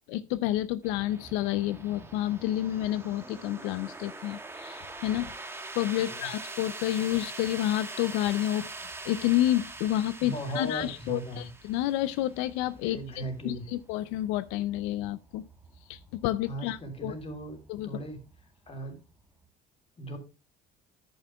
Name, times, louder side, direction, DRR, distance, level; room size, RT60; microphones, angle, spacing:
voice 1, 0.1-5.3 5.8-8.7 9.0-15.4 15.9-17.1 17.7-17.9, left 14 dB, 90° left, 0.5 m, -29 dB
sound 1, 0.8-19.5, right 2 dB, 10° right, 1.3 m, -44 dB
voice 2, 10.2-11.5 12.8-13.6 16.5-17.6 17.8-18.2 18.7-19.0 20.0-20.2, right 1 dB, 30° left, 3.3 m, -37 dB
10.5 x 9.4 x 2.3 m
cardioid pair, 110°, 19 cm